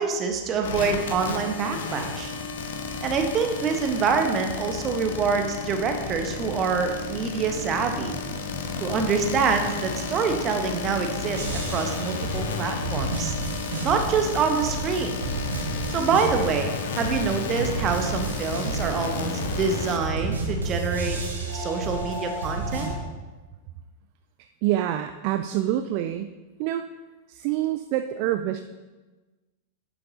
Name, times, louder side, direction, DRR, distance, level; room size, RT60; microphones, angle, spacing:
voice 1, 0.0-2.3 3.0-8.2 8.8-11.4 11.7-13.3 13.8-15.1 15.9-21.2 21.5-22.9, right 5 dB, 30° right, 5 dB, 1.1 m, -26 dB
sound 1, 0.6-20.0, left 4 dB, 60° left, 0.9 m, -32 dB
sound 2, 11.3-14.4 14.6-16.8 17.0-22.9, right 3 dB, 70° right, 1.8 m, -31 dB
voice 2, 24.6-26.3 26.6-26.9 27.3-28.6, right 13 dB, 45° right, 8 dB, 0.4 m, -26 dB
10.5 x 7.0 x 2.8 m, 1.2 s
figure-of-eight pair, 90°, 0 cm